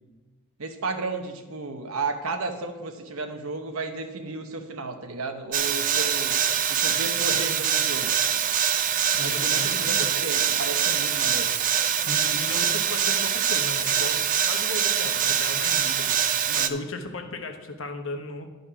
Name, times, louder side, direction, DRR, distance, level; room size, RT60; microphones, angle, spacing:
voice 1, 0.6-6.4 6.7-8.2 9.2-11.5 16.5-16.8, right 3 dB, 80° right, 6 dB, 0.9 m, -33 dB
sound 1, 5.5-16.7, right 9 dB, 40° right, 0.4 m, -24 dB
voice 2, 9.1-10.1 12.0-18.5, left 2 dB, 65° left, 5 dB, 1.0 m, -36 dB
11.5 x 5.2 x 5.0 m, 1.3 s
head